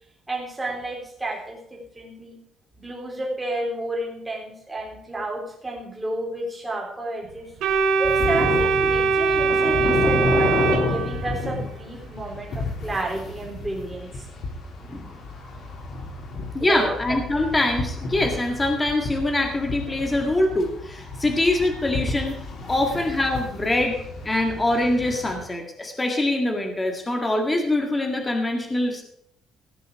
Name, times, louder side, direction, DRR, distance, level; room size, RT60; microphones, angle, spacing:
voice 1, 0.3-2.4 2.8-7.5 8.0-14.3 16.6-16.9 22.6-22.7 23.7-23.9, right 1 dB, 10° right, -2 dB, 3.7 m, -31 dB
Organ, 7.6-11.5, right 5 dB, 85° right, 2.3 m, -21 dB
sound 1, 8.0-25.4, left 2 dB, 50° left, 3.3 m, -31 dB
voice 2, 14.8-15.2 16.5-22.3 22.7-24.0 24.2-29.0, left 1 dB, 15° left, 3 dB, 1.9 m, -24 dB
16.5 x 6.8 x 6.4 m, 0.71 s
cardioid pair, 155°, 0 cm